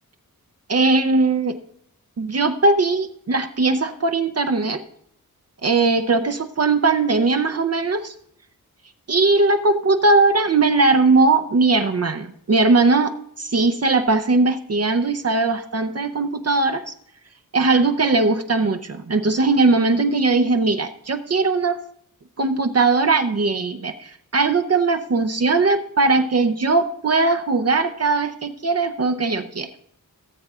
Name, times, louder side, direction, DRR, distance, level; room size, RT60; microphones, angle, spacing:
voice 1, 0.7-1.6 2.2-4.8 5.6-8.1 9.1-16.9 17.5-21.8 22.4-29.7, right 3 dB, 45° right, 7 dB, 0.6 m, -19 dB
17.5 x 7.7 x 2.4 m, 0.69 s
wide cardioid pair, 125°, 35 cm